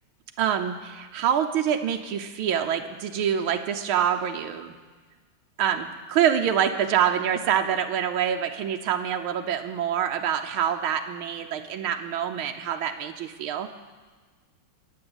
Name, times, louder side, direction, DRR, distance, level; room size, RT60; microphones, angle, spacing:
voice 1, 0.4-4.7 5.6-13.7, right 9 dB, 80° right, 4 dB, 1.7 m, -26 dB
21.0 x 8.1 x 7.9 m, 1.4 s
omnidirectional pair, 2.2 m